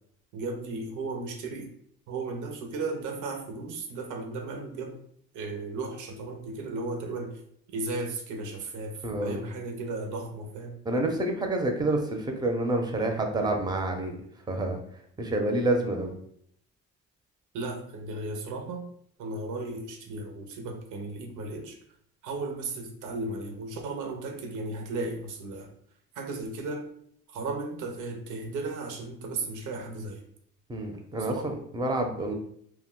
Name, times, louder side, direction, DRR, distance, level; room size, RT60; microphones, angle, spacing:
voice 1, 0.3-1.7 2.1-5.0 5.3-7.4 7.7-10.8 17.5-18.9 19.2-21.8 22.2-25.7 26.2-26.9 27.3-30.2 31.3-31.5, right 3 dB, 80° right, 4 dB, 0.6 m, -35 dB
voice 2, 9.0-9.4 10.9-14.2 14.5-14.8 15.2-16.1 30.7-32.3, right 2 dB, 15° right, 3 dB, 0.5 m, -28 dB
2.3 x 2.1 x 3.7 m, 0.68 s
cardioid pair, 90°, 30 cm